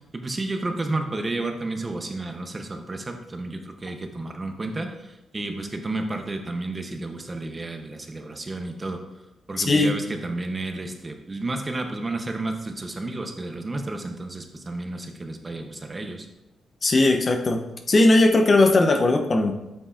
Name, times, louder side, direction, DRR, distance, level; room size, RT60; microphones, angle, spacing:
voice 1, 0.1-9.0 9.5-16.3, right 2 dB, 25° right, 5 dB, 0.7 m, -31 dB
voice 2, 16.8-17.6 17.9-19.5, left 2 dB, 35° left, 5 dB, 0.6 m, -18 dB
8.2 x 5.3 x 2.4 m, 0.95 s
cardioid pair, 115°, 0 cm